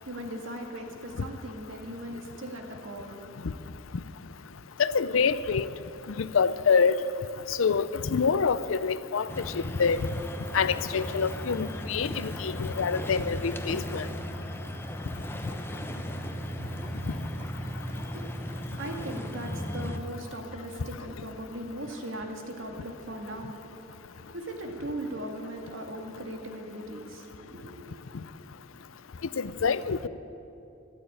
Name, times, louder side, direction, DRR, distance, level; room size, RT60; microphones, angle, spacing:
voice 1, 0.0-3.2 18.0-23.9 24.1-28.0, right 1 dB, 80° right, 2 dB, 2.0 m, -39 dB
voice 2, 4.8-5.7 6.2-7.0 7.5-9.3 9.5-10.0 10.5-14.1 29.4-30.0, left 5 dB, 90° left, 15 dB, 0.5 m, -26 dB
sound 1, 9.3-20.0, equal, 10° left, 0.8 m, -36 dB
13.0 x 12.5 x 8.7 m, 2.8 s
head